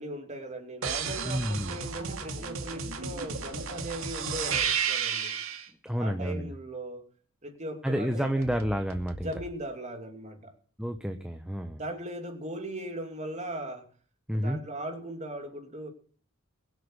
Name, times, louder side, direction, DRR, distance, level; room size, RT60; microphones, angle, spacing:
voice 1, 0.0-5.4 6.0-7.0 7.4-8.4 9.2-10.5 11.8-13.9 14.3-15.9, right 1 dB, 35° right, 5 dB, 2.8 m, -38 dB
sound 1, 0.8-5.7 8.4-9.5, right 6 dB, 90° right, 2.3 m, -33 dB
voice 2, 1.3-1.8 5.8-6.5 7.8-9.3 10.8-11.8 14.3-14.6, equal, 5° right, 6 dB, 0.9 m, -30 dB
22.5 x 8.1 x 4.8 m, 0.42 s
head